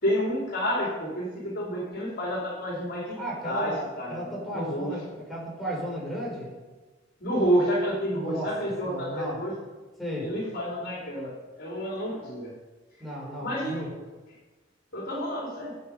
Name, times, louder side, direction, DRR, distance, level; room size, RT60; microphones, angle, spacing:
voice 1, 0.0-5.0 7.2-9.5 10.2-12.5 13.4-13.8 14.9-15.7, equal, 55° left, -3 dB, 4.2 m, -29 dB
voice 2, 3.2-6.5 8.1-8.5 8.8-9.4 10.0-10.3 13.0-13.9, equal, ahead, -5 dB, 5.1 m, -34 dB
14.5 x 9.4 x 5.5 m, 1.2 s
head